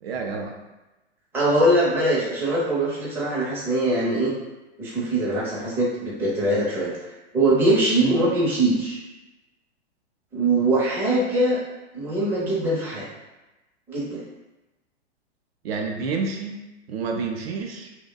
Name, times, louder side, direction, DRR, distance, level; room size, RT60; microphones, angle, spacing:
voice 1, 0.0-0.6 8.0-8.2 15.6-16.6 16.9-17.9, right 4 dB, 65° right, 2 dB, 0.4 m, -29 dB
voice 2, 1.3-4.3 4.8-6.9 7.3-9.0 10.3-11.6 11.9-13.0 13.9-14.2, right 1 dB, 5° right, -7 dB, 0.5 m, -22 dB
2.7 x 2.1 x 2.3 m, 1.0 s
hypercardioid pair, 110°, 33 cm